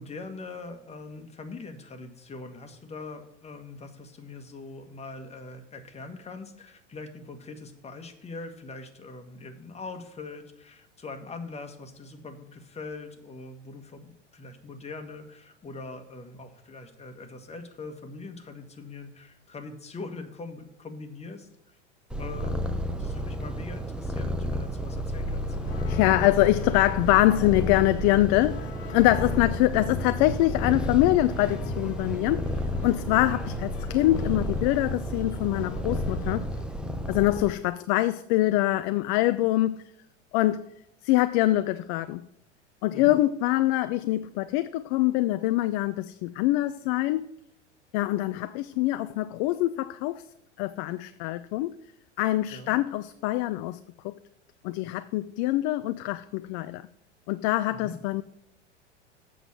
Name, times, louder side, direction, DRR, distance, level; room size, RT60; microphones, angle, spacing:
voice 1, 0.0-21.8 22.2-25.6 29.4-29.6 42.9-43.1 52.5-52.7 57.7-58.0, left 3 dB, 20° left, 1.4 m, -42 dB
Purr, 22.1-37.5, equal, ahead, 0.7 m, -31 dB
sound 1, 25.3-36.6, left 3 dB, 65° left, 1.3 m, -41 dB
voice 2, 25.9-32.5 32.8-36.5 37.1-39.8 40.3-40.6 41.0-42.2 42.8-47.3 47.9-50.2 50.6-51.8 52.2-53.8 54.0-54.1 54.6-56.8 57.3-58.2, left 16 dB, 45° left, 0.4 m, -24 dB
8.0 x 6.2 x 6.4 m
hypercardioid pair, 90°, 36 cm